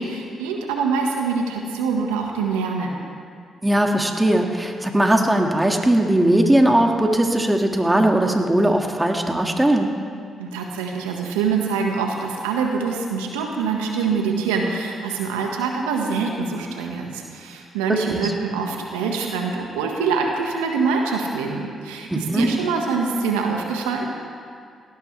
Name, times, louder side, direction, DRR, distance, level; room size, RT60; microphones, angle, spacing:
voice 1, 0.0-3.0 10.4-24.1, right 5 dB, 90° right, 1 dB, 1.5 m, -25 dB
voice 2, 3.6-9.9 18.1-18.3 22.1-22.5, right 1 dB, 15° right, 2 dB, 2.0 m, -19 dB
18.0 x 17.5 x 3.4 m, 2.2 s
hypercardioid pair, 45°, 0 cm